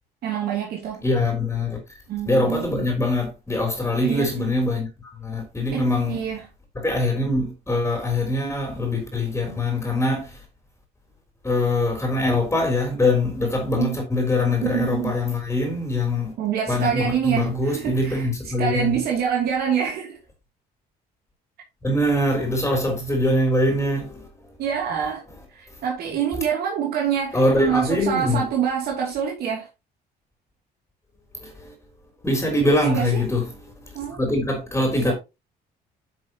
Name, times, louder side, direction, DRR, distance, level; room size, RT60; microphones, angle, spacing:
voice 1, 0.2-1.0 2.1-2.7 4.0-4.5 5.7-6.4 13.7-14.0 14.6-15.2 16.4-18.2 18.6-20.2 24.6-25.2 25.5-29.7 32.8-33.2 33.9-34.2 35.0-35.1, right 8 dB, 70° right, 2.9 m, -26 dB
voice 2, 1.0-1.8 2.3-6.2 6.8-10.4 11.4-16.3 16.7-19.0 21.8-24.3 27.3-28.5 31.4-31.7 32.2-33.6 33.9-35.1, left 2 dB, 15° left, 3.6 m, -23 dB
10.0 x 6.3 x 3.0 m
cardioid pair, 110°, 17 cm